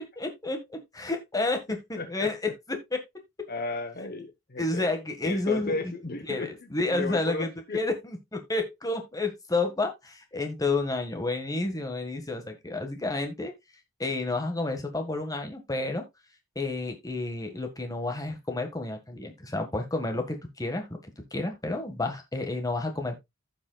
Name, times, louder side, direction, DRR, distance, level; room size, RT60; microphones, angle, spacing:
voice 1, 0.0-2.5 2.9-3.0 3.4-3.5 4.6-5.7 6.3-13.5 14.0-16.0 16.5-23.2, left 2 dB, 15° left, 1.5 m, -30 dB
voice 2, 2.0-2.5 3.5-4.9 5.2-6.5 6.9-7.8, left 2 dB, 45° left, 0.9 m, -34 dB
15.0 x 5.4 x 2.3 m
head